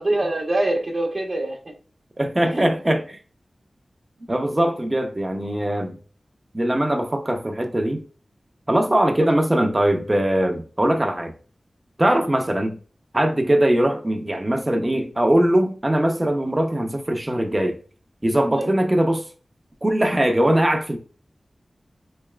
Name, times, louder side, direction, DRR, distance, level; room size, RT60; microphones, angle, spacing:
voice 1, 0.0-1.7 2.4-2.9 9.2-9.3 12.1-12.3 18.6-18.7, right 1 dB, 50° right, 0.8 m, -25 dB
voice 2, 2.2-3.2 4.3-6.0 6.5-8.0 8.7-11.3 12.0-12.8 13.1-17.8 18.2-19.2 19.8-21.0, right 1 dB, 25° right, 0.6 m, -21 dB
4.1 x 3.2 x 2.3 m
wide cardioid pair, 60°, 0 cm